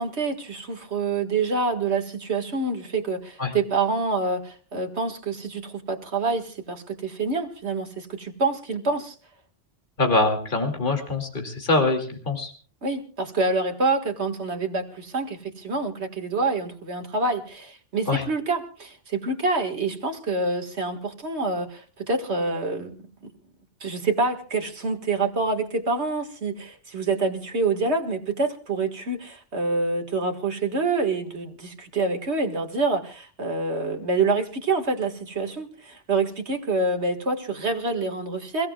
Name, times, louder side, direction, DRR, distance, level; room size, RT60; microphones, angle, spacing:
voice 1, 0.0-9.2 12.8-23.0 23.8-38.7, right 3 dB, 70° right, 4 dB, 2.2 m, -27 dB
voice 2, 10.0-12.5 18.1-18.2, left 2 dB, 45° left, 3 dB, 2.7 m, -24 dB
29.0 x 16.5 x 2.4 m, 0.40 s
omnidirectional pair, 1.2 m